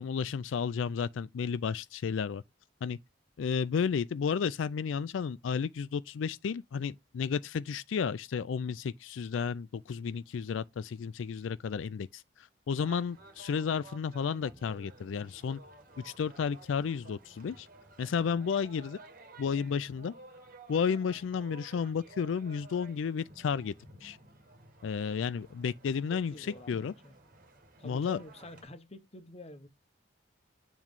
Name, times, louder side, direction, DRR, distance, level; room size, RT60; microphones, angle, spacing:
voice 1, 0.0-2.4 2.8-3.0 3.4-15.6 16.0-17.7 18.0-19.0 19.4-20.1 20.7-23.7 24.0-24.2 24.8-26.9 27.8-28.2, left 6 dB, 85° left, 0.4 m, -32 dB
sound 1, 12.8-28.6, right 2 dB, 50° right, 1.7 m, -54 dB
voice 2, 26.1-27.1 27.8-29.7, left 1 dB, 35° left, 1.0 m, -48 dB
7.3 x 3.1 x 5.3 m
head